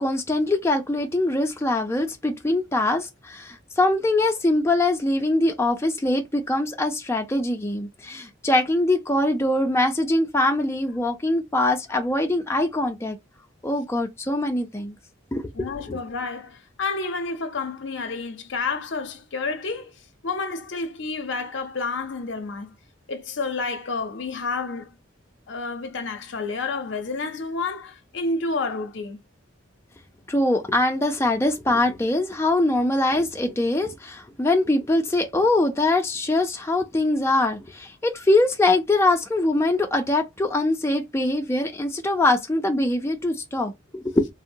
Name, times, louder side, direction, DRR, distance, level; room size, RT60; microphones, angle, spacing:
voice 1, 0.0-13.2 13.6-15.0 15.3-15.4 15.9-16.0 30.3-44.3, left 2 dB, 15° left, 0.4 m, -23 dB
voice 2, 15.5-19.9 20.2-22.7 23.1-24.9 25.5-29.2, left 4 dB, 60° left, 0.6 m, -30 dB
3.6 x 2.0 x 2.6 m
head